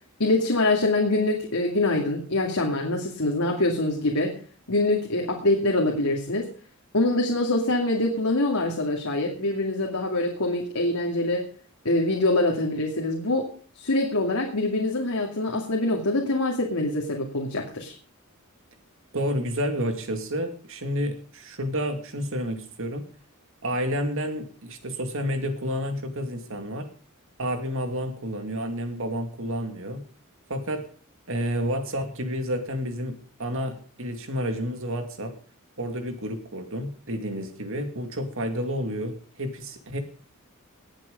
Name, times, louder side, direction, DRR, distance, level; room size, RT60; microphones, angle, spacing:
voice 1, 0.2-4.4 4.7-6.5 6.9-11.5 11.8-13.5 13.7-17.9, left 2 dB, 90° left, 0 dB, 2.5 m, -24 dB
voice 2, 19.1-23.0 23.6-26.9 27.4-30.0 30.5-30.8 31.3-35.3 35.8-40.0, equal, 65° right, 6 dB, 2.4 m, -30 dB
19.0 x 7.9 x 5.3 m, 0.43 s
head